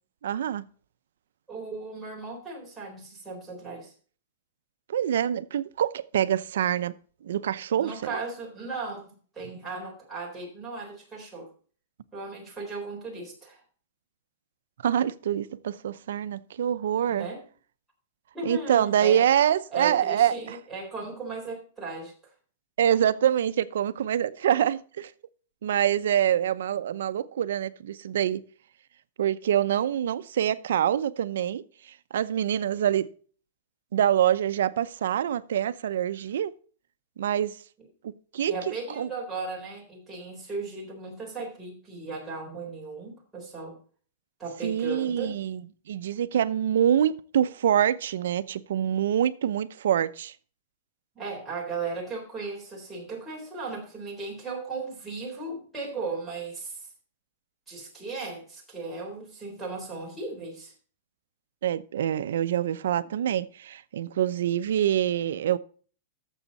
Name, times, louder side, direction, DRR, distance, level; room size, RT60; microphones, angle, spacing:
voice 1, 0.2-0.6 4.9-6.9 7.2-8.2 14.8-17.3 18.4-20.6 22.8-25.1 25.6-28.4 29.2-33.1 33.9-36.5 37.2-37.6 38.0-38.5 39.0-39.1 44.6-45.6 45.9-50.3 61.6-65.6, right 10 dB, 80° right, 0.7 m, -25 dB
voice 2, 1.5-3.9 7.8-11.5 12.1-13.6 17.1-17.4 18.3-19.2 19.7-22.1 38.5-43.8 44.4-45.4 51.2-56.9 57.7-60.7, right 3 dB, 5° right, 3.8 m, -36 dB
12.5 x 7.3 x 4.0 m
supercardioid pair, 155°, 0 cm